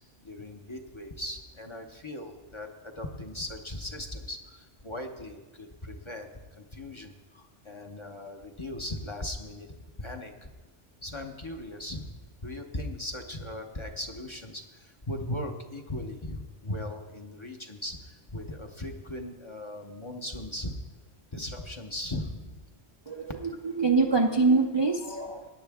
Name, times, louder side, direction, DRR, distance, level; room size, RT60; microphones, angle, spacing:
voice 1, 0.2-6.3 6.6-9.7 10.0-10.5 11.0-12.1 12.4-20.7 21.3-22.7, left 1 dB, 30° left, 3 dB, 0.8 m, -38 dB
voice 2, 23.1-25.5, right 3 dB, 35° right, 2 dB, 0.5 m, -25 dB
17.5 x 10.0 x 3.6 m, 1.2 s
omnidirectional pair, 1.2 m